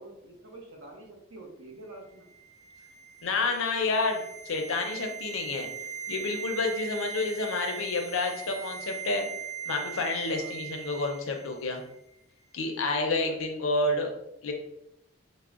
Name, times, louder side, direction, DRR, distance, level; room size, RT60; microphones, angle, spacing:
voice 1, 0.0-2.3 10.3-10.6 13.3-13.4 13.7-14.1, right 2 dB, 75° right, 1 dB, 0.8 m, -47 dB
sound 1, 2.3-11.5 11.8-11.9, right 8 dB, 10° left, 0.4 m, -40 dB
voice 2, 3.2-5.7 6.1-9.3 9.7-11.8 12.5-14.1 14.4-14.5, left 3 dB, 75° left, 3 dB, 0.6 m, -29 dB
4.7 x 2.1 x 2.4 m, 0.82 s
head